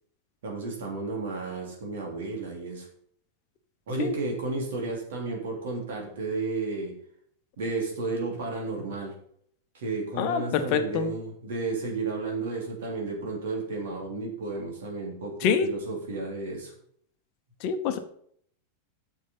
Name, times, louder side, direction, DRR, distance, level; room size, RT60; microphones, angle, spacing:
voice 1, 0.4-2.9 3.9-6.9 7.6-9.1 9.7-16.7, right 3 dB, 60° right, 1 dB, 3.3 m, -32 dB
voice 2, 10.2-11.1 15.4-15.7 17.6-18.0, left 7 dB, 45° left, 8 dB, 1.0 m, -26 dB
8.5 x 6.8 x 5.6 m, 0.63 s
figure-of-eight pair, 90°, 0 cm